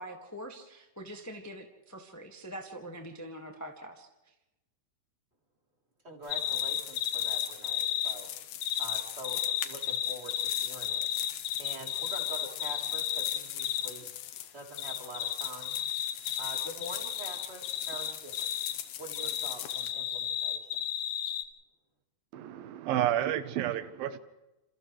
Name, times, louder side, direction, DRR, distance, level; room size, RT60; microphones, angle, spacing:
voice 1, 0.0-4.1, equal, 10° left, 0.7 m, -44 dB
voice 2, 6.0-8.3 8.8-11.1 11.6-14.1 14.5-15.8 16.4-18.5 19.0-20.6, right 1 dB, 20° right, 3.6 m, -45 dB
sound 1, 6.2-19.9, left 12 dB, 85° left, 2.8 m, -42 dB
sound 2, 6.3-8.2 8.6-13.9 14.8-18.8 19.1-21.4, left 10 dB, 70° left, 2.2 m, -33 dB
voice 3, 22.3-24.2, right 12 dB, 85° right, 2.7 m, -30 dB
29.0 x 28.0 x 3.3 m
omnidirectional pair, 4.1 m